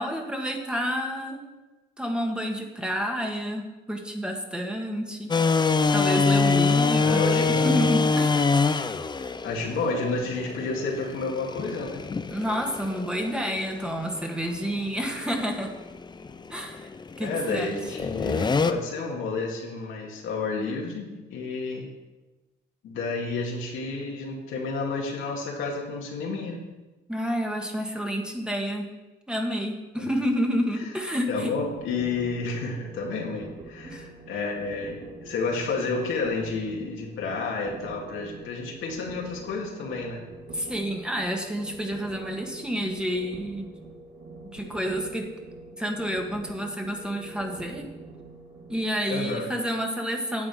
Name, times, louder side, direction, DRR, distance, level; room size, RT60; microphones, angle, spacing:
voice 1, 0.0-1.4 2.0-5.3 5.9-8.5 12.3-15.7 16.5-16.9 17.2-17.8 27.1-28.9 29.3-31.5 33.8-34.0 40.5-43.7 44.4-45.3 45.8-47.9 48.7-50.5, equal, 5° right, 2 dB, 1.5 m, -29 dB
sound 1, 5.3-18.7, left 4 dB, 20° left, 0.5 m, -26 dB
voice 2, 7.0-7.9 9.2-12.0 17.2-21.9 22.8-26.6 30.0-30.1 30.8-30.9 31.3-40.3 49.1-49.5, left 3 dB, 85° left, -1 dB, 2.1 m, -31 dB
sound 2, 31.4-48.8, right 2 dB, 65° right, 2.9 m, -44 dB
9.8 x 7.6 x 4.9 m, 1.1 s
cardioid pair, 90°, 20 cm